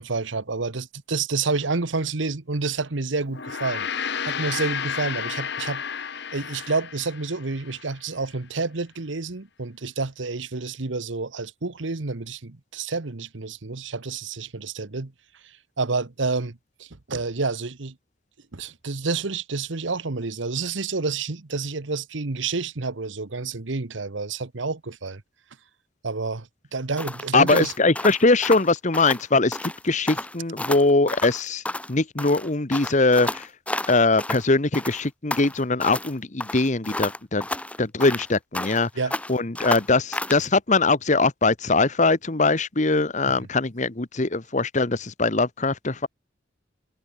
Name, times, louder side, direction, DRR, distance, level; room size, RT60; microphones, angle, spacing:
voice 1, 0.0-5.8 6.3-15.1 15.4-17.9 18.5-25.2 26.0-27.7 39.0-39.1, right 4 dB, 75° right, 1.2 m, -29 dB
Gong, 3.3-7.9, left 7 dB, 60° left, 1.2 m, -31 dB
sound 1, 27.0-29.2 29.5-29.8 30.1-31.9 32.2-34.5 34.7-36.1 36.4-38.9 39.1-40.4, left 1 dB, 5° left, 2.6 m, -31 dB
voice 2, 27.3-31.6 31.9-33.5 33.9-37.5 37.8-38.9 39.3-46.1, left 3 dB, 40° left, 1.2 m, -21 dB
head